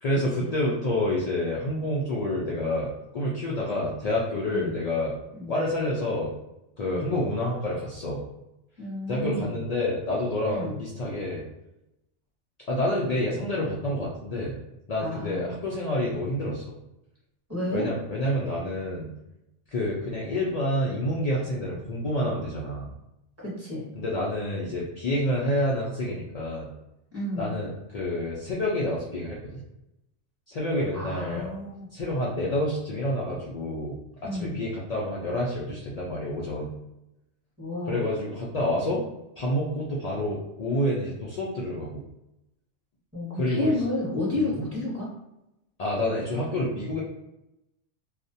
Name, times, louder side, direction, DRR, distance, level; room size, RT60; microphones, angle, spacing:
voice 1, 0.0-5.1 5.5-6.3 6.8-8.2 9.1-11.4 12.7-14.6 14.9-16.7 17.7-19.1 19.7-22.9 23.9-26.7 27.4-29.6 30.5-31.5 31.9-34.0 34.4-36.7 37.9-39.0 39.4-42.0 43.3-43.7 44.4-44.5 45.8-47.0, left 1 dB, 80° left, -5 dB, 0.3 m, -28 dB
voice 2, 8.8-9.6 10.5-10.7 15.0-15.5 17.5-17.8 23.4-23.8 27.1-27.5 30.9-31.9 34.2-34.6 37.6-38.0 43.1-45.1, left 1 dB, 15° right, -8 dB, 0.8 m, -31 dB
2.3 x 2.1 x 2.6 m, 0.89 s
omnidirectional pair, 1.2 m